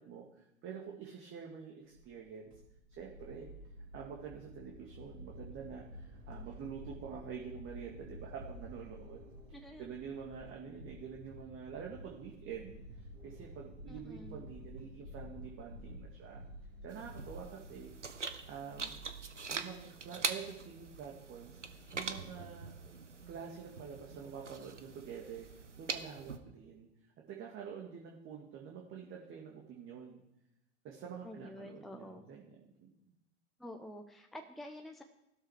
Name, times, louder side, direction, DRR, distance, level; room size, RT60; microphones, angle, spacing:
voice 1, 0.0-2.6 2.9-3.5 3.9-9.2 9.8-16.4 16.8-17.9 18.4-19.0 19.5-21.6 21.9-22.7 23.3-25.5 25.8-26.9 27.3-30.2 30.8-32.4 32.8-32.9, right 7 dB, 35° right, 0 dB, 2.2 m, -47 dB
sound 1, 1.9-17.9, equal, 60° right, 4.5 m, -51 dB
voice 2, 9.5-9.9 13.9-14.4 31.2-32.2 33.6-35.0, left 1 dB, ahead, 4 dB, 1.1 m, -48 dB
sound 2, 16.9-26.4, right 4 dB, 85° right, 1.0 m, -43 dB
15.0 x 12.5 x 5.0 m, 0.86 s
figure-of-eight pair, 85°, 35 cm